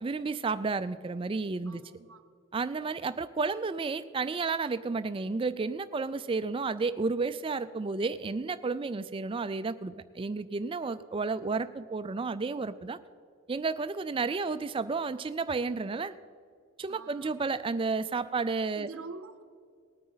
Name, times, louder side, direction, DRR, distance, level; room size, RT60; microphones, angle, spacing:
voice 1, 0.0-1.8 2.5-13.0 13.5-16.1 16.8-18.9, right 4 dB, 25° right, 13 dB, 0.3 m, -32 dB
voice 2, 1.7-2.2 16.9-17.4 18.8-19.4, right 3 dB, 65° right, 10 dB, 0.7 m, -45 dB
19.0 x 9.2 x 4.0 m, 2.3 s
head